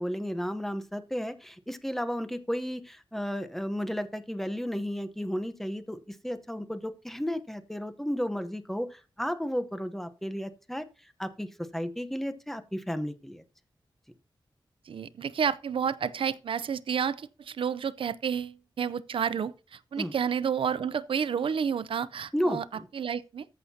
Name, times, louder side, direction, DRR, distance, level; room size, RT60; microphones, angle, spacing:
voice 1, 0.0-10.8 11.2-11.5 11.7-13.4 20.0-20.1 22.3-22.9, equal, 5° left, 0.9 m, -33 dB
voice 2, 14.9-22.6 22.9-23.5, right 7 dB, 85° right, 0.6 m, -30 dB
14.0 x 6.5 x 2.8 m
wide cardioid pair, 140°, 9 cm